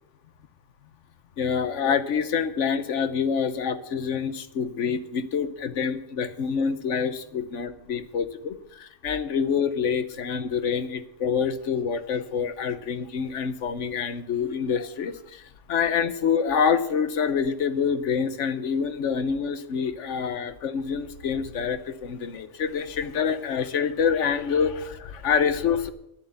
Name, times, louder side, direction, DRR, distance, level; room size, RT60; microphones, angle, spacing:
voice 1, 1.4-15.4 15.7-25.9, left 6 dB, 80° left, 11 dB, 1.2 m, -26 dB
11.0 x 7.6 x 8.1 m, 0.84 s
omnidirectional pair, 1.2 m